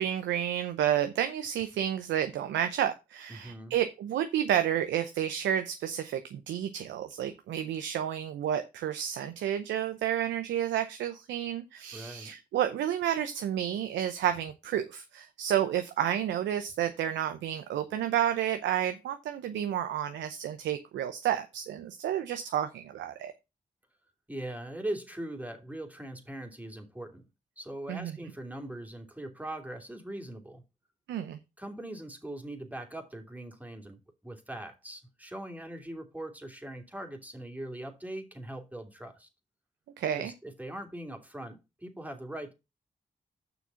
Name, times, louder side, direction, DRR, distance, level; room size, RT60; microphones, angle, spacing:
voice 1, 0.0-23.3 27.9-28.2 31.1-31.4 40.0-40.3, right 10 dB, 90° right, 0.7 m, -30 dB
voice 2, 3.3-3.7 11.9-12.3 24.3-27.3 27.6-30.6 31.6-39.3 40.2-42.5, right 1 dB, 10° right, 2.9 m, -41 dB
7.2 x 6.1 x 5.6 m
supercardioid pair, 40°, 18 cm